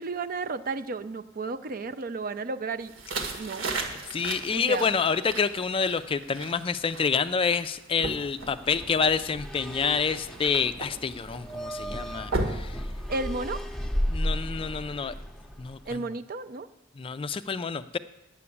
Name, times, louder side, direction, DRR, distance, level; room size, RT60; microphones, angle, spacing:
voice 1, 0.0-2.9 3.4-3.7 4.5-4.9 13.1-13.6 15.8-16.7, right 3 dB, 45° right, 10 dB, 0.5 m, -33 dB
sound 1, 2.8-13.6, right 2 dB, 75° right, 1.7 m, -37 dB
voice 2, 4.1-12.8 14.1-15.1 15.6-16.0 17.0-18.0, left 5 dB, 25° left, 12 dB, 0.3 m, -28 dB
sound 2, 8.4-16.0, equal, 5° left, 0.7 m, -34 dB
9.7 x 7.7 x 8.4 m, 0.93 s
head